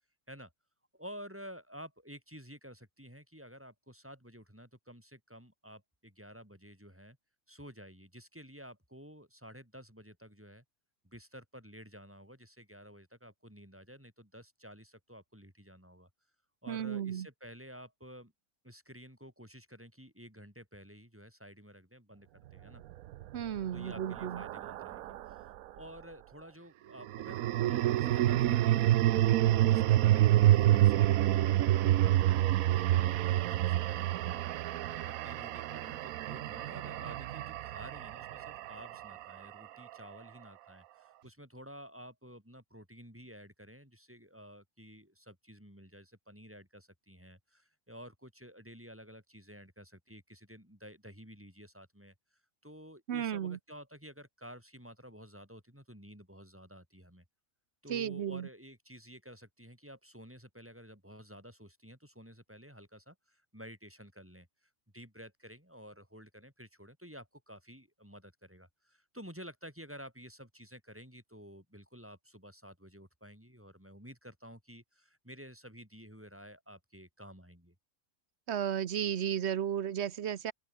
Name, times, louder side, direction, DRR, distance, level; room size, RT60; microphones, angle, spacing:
voice 1, 0.9-7.2 7.5-10.6 11.0-16.1 16.6-18.3 18.6-22.8 23.7-25.5 25.7-29.0 29.4-34.4 34.8-52.1 52.6-57.2 57.8-77.7, equal, 10° right, 5.4 m, -52 dB
voice 2, 16.7-17.3 23.3-24.4 53.1-53.6 57.9-58.5 78.5-80.5, right 9 dB, 55° right, 1.0 m, -34 dB
sound 1, 22.9-25.4 27.0-39.3, right 13 dB, 75° right, 1.1 m, -28 dB
open air
omnidirectional pair, 1.5 m